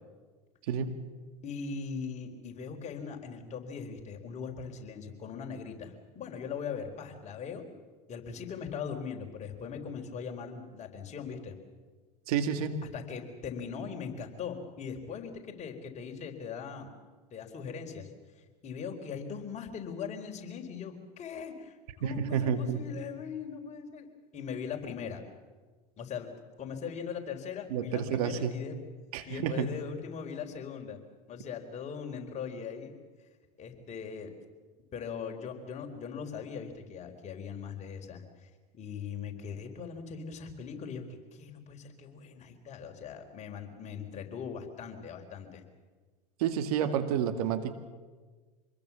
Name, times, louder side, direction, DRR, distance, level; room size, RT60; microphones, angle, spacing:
voice 1, 0.7-1.0 12.3-12.8 22.0-22.8 27.7-28.5 29.1-29.7 46.4-47.7, right 8 dB, 70° right, 8 dB, 2.2 m, -30 dB
voice 2, 1.4-7.7 8.1-11.6 12.9-16.9 17.3-18.1 18.6-24.1 24.3-25.2 26.0-26.3 26.6-28.8 29.3-31.0 31.3-32.9 33.6-34.3 34.9-45.6, left 6 dB, 35° left, 3 dB, 4.2 m, -40 dB
26.0 x 21.0 x 7.3 m, 1.4 s
hypercardioid pair, 90°, 20 cm